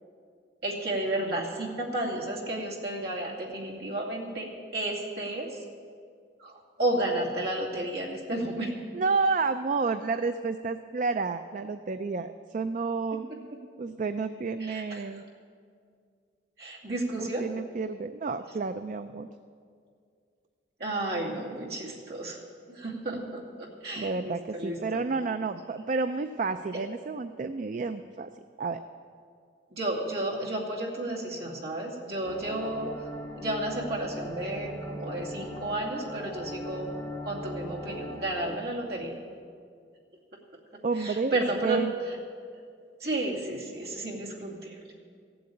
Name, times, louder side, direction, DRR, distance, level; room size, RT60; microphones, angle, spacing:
voice 1, 0.6-5.6 6.4-8.7 13.1-13.2 14.6-15.0 16.6-17.5 20.8-22.4 22.7-24.8 29.7-32.9 33.4-36.9 37.2-39.1 41.0-42.2 43.0-44.9, right 1 dB, 60° right, -3 dB, 2.5 m, -32 dB
voice 2, 8.9-13.2 13.8-15.2 17.4-19.3 24.0-28.3 28.6-28.8 40.8-41.9, right 4 dB, 45° right, 9 dB, 0.4 m, -30 dB
sound 1, 32.2-38.6, equal, 15° left, 1.2 m, -40 dB
15.0 x 7.9 x 8.6 m, 2.2 s
head